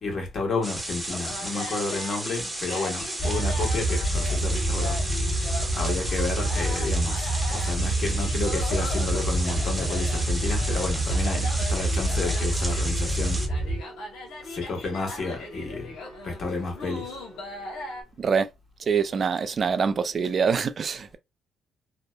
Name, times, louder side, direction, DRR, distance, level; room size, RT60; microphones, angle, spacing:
voice 1, 0.0-5.0 5.7-13.4 14.5-15.9 16.2-17.1, left 3 dB, 45° left, 1.2 m, -31 dB
sound 1, 0.6-13.5, right 1 dB, 10° right, 0.9 m, -34 dB
sound 2, 1.1-18.0, left 2 dB, 85° left, 1.0 m, -39 dB
sound 3, 3.2-13.8, right 1 dB, 25° left, 1.1 m, -27 dB
voice 2, 18.8-21.2, right 6 dB, 45° right, 0.3 m, -25 dB
2.8 x 2.0 x 2.3 m
cardioid pair, 90°, 0 cm